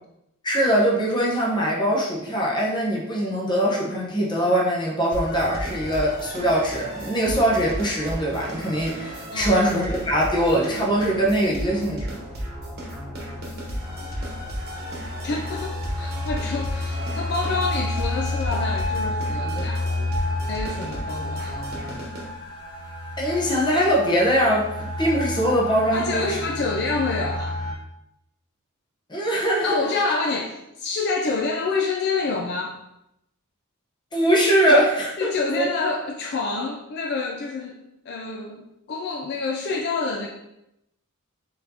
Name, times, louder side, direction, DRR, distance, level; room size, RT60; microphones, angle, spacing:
voice 1, 0.4-12.1 23.2-26.4 29.1-29.8 34.1-35.7, equal, 20° left, -3 dB, 0.9 m, -22 dB
sound 1, 5.1-22.3, right 1 dB, 45° right, 1.1 m, -34 dB
sound 2, 10.6-27.7, left 2 dB, 70° left, 1.3 m, -31 dB
voice 2, 15.2-19.8 20.4-21.6 25.9-27.5 29.6-32.8 35.2-37.8 38.1-40.3, left 3 dB, 50° left, 0 dB, 0.4 m, -27 dB
4.1 x 4.0 x 2.8 m, 0.83 s
head